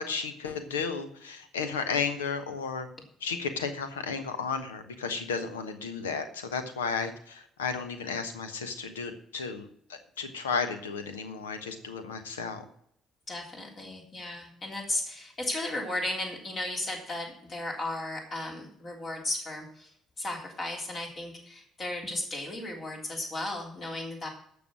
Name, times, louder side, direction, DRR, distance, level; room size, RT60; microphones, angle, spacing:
voice 1, 0.0-2.9 3.2-12.6, left 5 dB, 75° left, 10 dB, 1.1 m, -33 dB
voice 2, 13.3-19.9 20.2-24.3, left 2 dB, 40° left, 1 dB, 3.5 m, -35 dB
12.0 x 6.9 x 6.3 m, 0.68 s
figure-of-eight pair, 50°, 0 cm